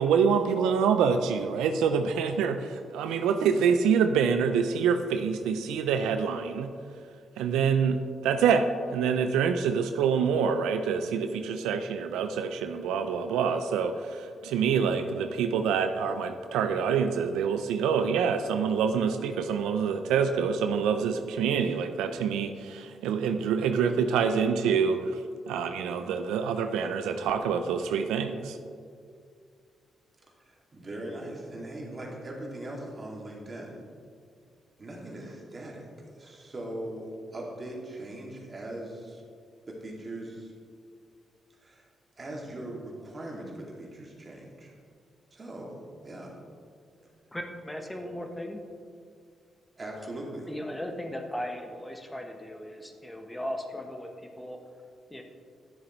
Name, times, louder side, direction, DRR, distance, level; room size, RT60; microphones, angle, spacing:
voice 1, 0.0-6.7 7.4-25.2 25.5-28.6, right 6 dB, 90° right, 8 dB, 0.3 m, -26 dB
voice 2, 30.5-33.8 34.8-39.2 39.7-40.5 41.6-41.9 42.2-44.8 45.3-45.8 46.0-46.3 49.8-50.5, right 1 dB, 40° right, -2 dB, 2.1 m, -40 dB
voice 3, 47.3-48.6 50.5-54.1 54.4-54.6 55.1-55.2, left 1 dB, 10° left, 3 dB, 0.9 m, -37 dB
10.5 x 7.0 x 3.0 m, 2.2 s
supercardioid pair, 60°, 0 cm